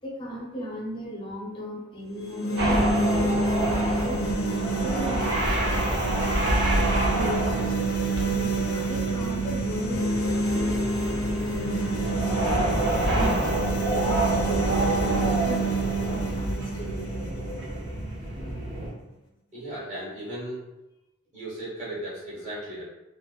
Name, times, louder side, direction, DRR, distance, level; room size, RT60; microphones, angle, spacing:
voice 1, 0.0-4.2 4.8-5.6 6.7-10.8 11.4-11.8 12.7-17.4, equal, 25° left, -4 dB, 0.5 m, -37 dB
sound 1, 2.1-18.1, right 2 dB, 70° left, 0.5 m, -28 dB
sound 2, 2.6-18.9, right 1 dB, 55° right, 0.5 m, -28 dB
voice 2, 19.5-20.6 21.3-22.8, right 1 dB, 30° right, -9 dB, 1.0 m, -36 dB
2.9 x 2.0 x 2.3 m, 0.96 s
head